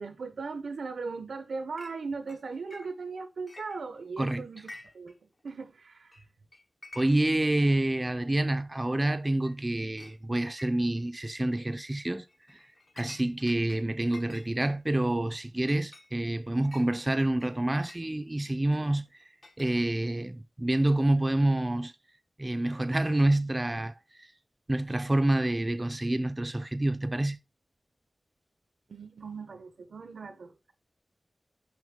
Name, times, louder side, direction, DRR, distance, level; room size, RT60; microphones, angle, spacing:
voice 1, 0.0-6.2 28.9-30.7, right 4 dB, 90° right, 0.8 m, -38 dB
Chink clink, 1.8-2.0 2.3-3.2 3.5-4.2 4.6-5.1 5.4-5.5 6.1-6.2 6.5-7.3 7.8-7.9 8.7-8.8 9.2-9.6 10.0-10.2 10.6-11.1 11.5-11.8 12.3-13.8 14.1-18.1 18.7-20.2, left 2 dB, 40° left, 1.0 m, -51 dB
voice 2, 6.9-12.6 13.0-19.0 19.6-21.9 22.4-24.3 24.7-27.4, right 1 dB, 20° right, 0.5 m, -28 dB
6.2 x 5.9 x 3.6 m
wide cardioid pair, 110°, 0 cm